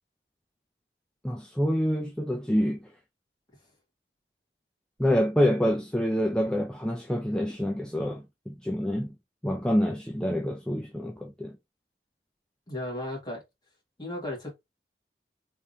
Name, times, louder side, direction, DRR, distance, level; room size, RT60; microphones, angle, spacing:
voice 1, 1.2-2.9 5.0-9.1 9.4-11.6, equal, 5° left, 0.4 m, -27 dB
voice 2, 12.7-13.4 14.0-14.5, left 1 dB, 25° left, 1.9 m, -34 dB
3.6 x 3.5 x 2.7 m
head